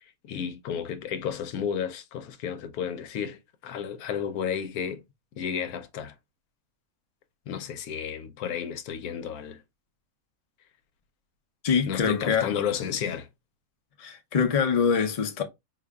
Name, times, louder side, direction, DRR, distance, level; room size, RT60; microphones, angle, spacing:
voice 1, 0.2-5.0 5.4-6.1 7.5-9.6 11.9-13.3, left 8 dB, 85° left, 1.1 m, -32 dB
voice 2, 11.6-12.5 14.0-15.4, left 6 dB, 65° left, 0.3 m, -24 dB
4.8 x 2.6 x 2.2 m
omnidirectional pair, 1.5 m